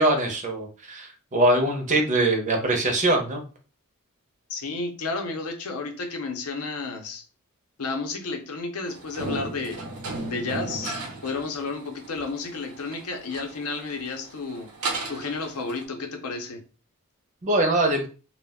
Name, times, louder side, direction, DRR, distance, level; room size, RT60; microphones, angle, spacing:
voice 1, 0.0-3.4 17.4-18.1, right 2 dB, 35° right, 3 dB, 0.6 m, -22 dB
voice 2, 4.5-7.2 7.8-9.8 10.2-10.9 11.2-14.7 15.1-16.6, left 3 dB, 75° left, 4 dB, 0.6 m, -32 dB
sound 1, 8.9-15.8, right 2 dB, 80° right, 0.7 m, -36 dB
2.2 x 2.1 x 3.5 m, 0.36 s
head